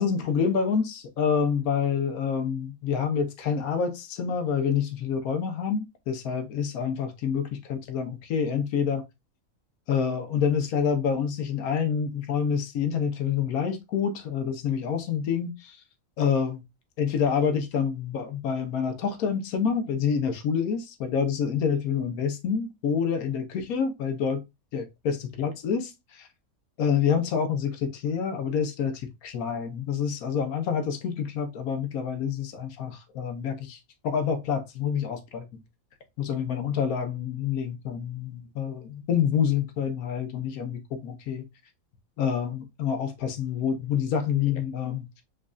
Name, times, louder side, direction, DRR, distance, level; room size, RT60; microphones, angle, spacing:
voice 1, 0.0-9.0 9.9-15.8 16.2-16.6 17.0-24.4 24.7-26.3 26.8-33.8 34.0-35.6 36.2-41.4 42.2-45.2, left 7 dB, 90° left, 1.2 m, -27 dB
5.1 x 2.5 x 2.3 m
omnidirectional pair, 1.5 m